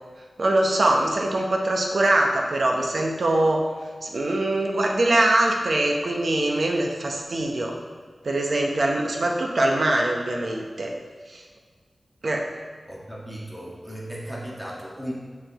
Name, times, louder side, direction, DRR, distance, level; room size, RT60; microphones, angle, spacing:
voice 1, 0.4-3.6 4.0-7.7 8.2-10.9 11.3-11.4 12.2-12.5, right 1 dB, 65° right, 1 dB, 0.8 m, -23 dB
voice 2, 12.9-15.1, right 1 dB, 5° right, -5 dB, 1.6 m, -36 dB
6.8 x 5.9 x 3.0 m, 1.5 s
wide cardioid pair, 95°, 0 cm